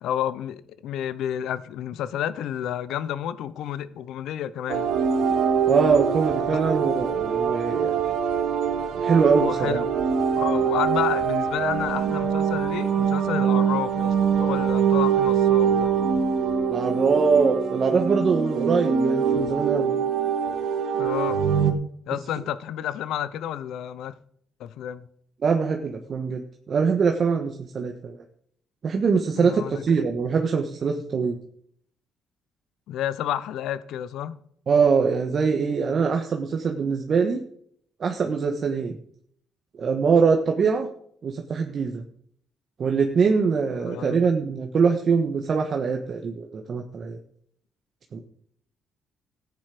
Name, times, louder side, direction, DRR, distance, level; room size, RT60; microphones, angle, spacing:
voice 1, 0.0-4.9 9.4-9.9 10.4-15.9 20.9-21.4 22.1-24.1 24.6-25.1 29.3-29.8 32.9-34.4 43.7-44.2, left 11 dB, 85° left, 0.8 m, -30 dB
sound 1, 4.7-21.7, right 7 dB, 75° right, 2.0 m, -23 dB
voice 2, 5.7-8.0 9.0-9.8 16.7-19.9 25.4-28.2 28.8-31.4 34.7-37.4 38.0-39.0 39.8-40.9 41.2-42.0 42.8-47.2 48.1-48.2, right 5 dB, 50° right, 1.5 m, -23 dB
14.5 x 9.6 x 5.1 m
cardioid pair, 90°, 0 cm